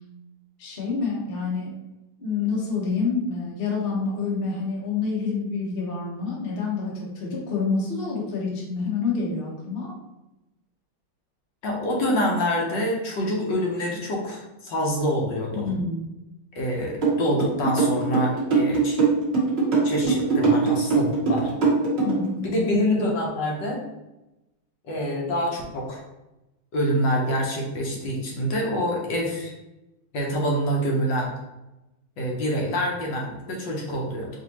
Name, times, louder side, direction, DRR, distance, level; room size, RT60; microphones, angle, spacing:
voice 1, 0.6-1.7 2.2-9.9 15.5-16.1 22.0-22.6, left 4 dB, 40° left, -3 dB, 0.8 m, -27 dB
voice 2, 11.6-15.7 16.5-19.0 19.8-21.5 22.4-23.8 24.8-26.0 26.7-29.5 30.1-31.3 32.2-34.3, equal, 70° left, -2 dB, 1.4 m, -26 dB
sound 1, 17.0-22.3, right 5 dB, 35° right, 1.2 m, -21 dB
5.0 x 2.7 x 2.9 m, 0.97 s
omnidirectional pair, 2.2 m